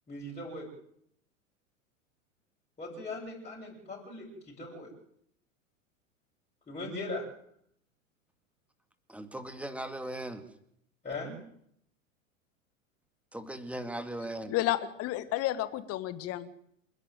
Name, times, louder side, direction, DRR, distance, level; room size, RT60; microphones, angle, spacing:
voice 1, 0.1-0.7 2.8-4.9 6.7-7.3 11.0-11.4, left 2 dB, 20° left, 7.7 m, -39 dB
voice 2, 9.1-10.5 13.3-14.5, right 1 dB, 5° right, 2.2 m, -38 dB
voice 3, 14.5-16.5, left 14 dB, 35° left, 1.8 m, -31 dB
28.0 x 11.5 x 9.3 m
figure-of-eight pair, 90°, 39 cm